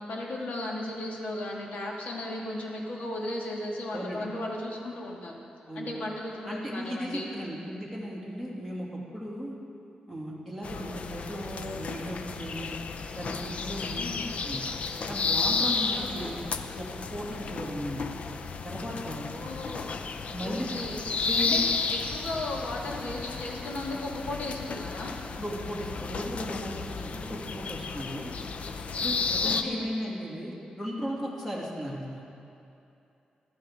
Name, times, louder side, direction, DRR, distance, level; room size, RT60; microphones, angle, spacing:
voice 1, 0.0-5.3 5.7-7.3 14.0-14.3 15.9-16.3 19.2-19.9 20.4-21.0 21.4-21.6 21.9-25.1 29.4-29.9, left 1 dB, 75° left, -2 dB, 2.2 m, -35 dB
voice 2, 3.9-4.3 5.7-5.9 6.4-9.6 10.1-12.8 13.2-14.1 14.4-14.7 15.1-16.4 16.7-18.0 18.6-19.3 20.3-20.7 21.2-21.6 25.3-28.3 29.0-32.2, equal, 10° left, -5 dB, 2.6 m, -36 dB
sound 1, 10.6-29.6, left 4 dB, 55° left, 0.6 m, -33 dB
15.5 x 13.0 x 3.8 m, 2.7 s
wide cardioid pair, 135°, 3 cm